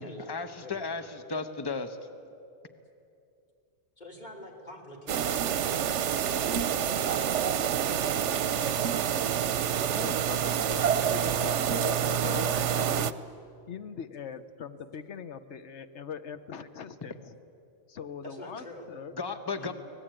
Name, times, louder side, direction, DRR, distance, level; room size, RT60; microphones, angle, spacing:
voice 1, 0.0-2.0 19.2-19.7, left 4 dB, 20° left, 8 dB, 1.1 m, -34 dB
voice 2, 4.0-7.1 8.2-8.8 18.2-18.9 19.5-19.7, left 1 dB, 40° left, 0 dB, 3.5 m, -46 dB
sound 1, 5.1-13.1, right 9 dB, 80° right, 1.0 m, -27 dB
voice 3, 9.9-13.2 13.7-17.4 17.9-19.2, left 6 dB, 75° left, 11 dB, 1.2 m, -40 dB
24.5 x 19.0 x 9.0 m, 2.6 s
omnidirectional pair, 1.2 m